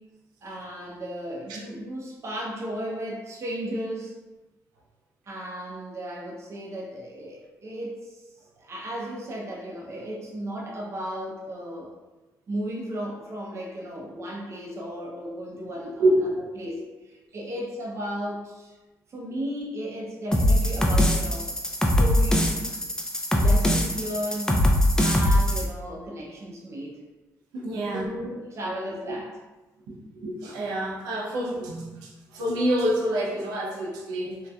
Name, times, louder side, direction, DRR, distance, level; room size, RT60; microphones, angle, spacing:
voice 1, 0.4-4.1 5.3-8.2 8.6-11.9 12.5-16.1 16.6-18.7 19.1-21.5 21.8-22.7 23.3-24.5 25.0-27.0 27.7-29.3, equal, 45° right, -3 dB, 0.6 m, -35 dB
voice 2, 16.0-16.4 27.5-28.1 28.6-28.7 29.1-29.2 29.9-34.5, right 1 dB, 90° right, -2 dB, 0.5 m, -27 dB
sound 1, 20.3-25.6, left 1 dB, 10° left, 0.4 m, -22 dB
2.6 x 2.2 x 2.3 m, 1.1 s
supercardioid pair, 65°, 7 cm